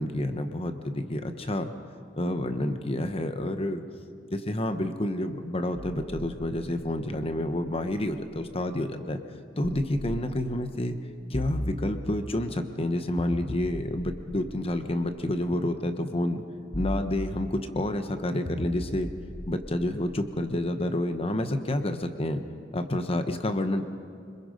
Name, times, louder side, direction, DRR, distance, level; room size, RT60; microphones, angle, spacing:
voice 1, 0.0-1.7 2.1-3.8 4.3-9.2 9.6-11.0 11.3-16.4 16.7-19.1 19.4-22.4 22.7-23.8, left 1 dB, 30° left, 8 dB, 1.1 m, -29 dB
sound 1, 5.7-8.5 9.6-10.7 11.3-12.4 13.2-15.4 16.7-17.8 18.4-20.6, equal, 80° left, 3.7 m, -39 dB
25.5 x 21.5 x 5.2 m, 2.4 s
head